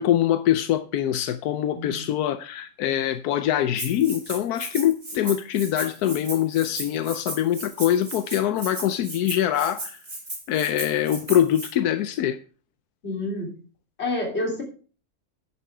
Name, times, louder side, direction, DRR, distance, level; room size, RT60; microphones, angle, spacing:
voice 1, 0.0-10.0 10.5-12.4, left 11 dB, 90° left, 1.2 m, -24 dB
voice 2, 1.7-2.0 13.0-13.5 14.0-14.6, left 2 dB, 45° left, 3.4 m, -29 dB
Rattle (instrument), 3.8-11.7, right 2 dB, 30° right, 2.6 m, -36 dB
10.5 x 7.1 x 4.7 m
omnidirectional pair, 1.6 m